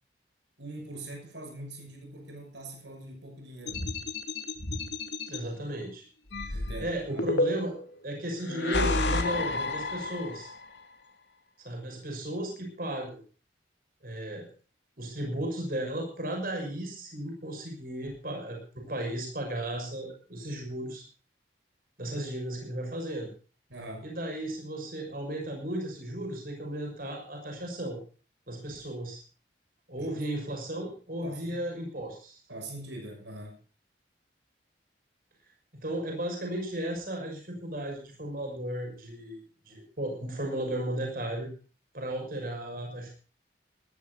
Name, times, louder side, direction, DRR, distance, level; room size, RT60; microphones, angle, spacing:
voice 1, 0.6-3.9 6.5-7.3 23.7-24.1 30.0-30.3 31.2-31.6 32.5-33.6, right 1 dB, 85° right, 3 dB, 6.7 m, -43 dB
sound 1, 3.7-5.4 6.3-7.8 8.5-10.6, left 2 dB, 75° left, 2.4 m, -31 dB
voice 2, 5.3-6.0 6.4-7.8 8.0-10.5 11.6-13.2 14.0-14.5 15.0-21.0 22.0-23.3 24.0-28.0 28.5-29.2 29.9-32.4 35.8-41.5 41.9-43.1, right 1 dB, 50° right, 2 dB, 6.1 m, -35 dB
19.5 x 13.0 x 4.0 m, 0.39 s
head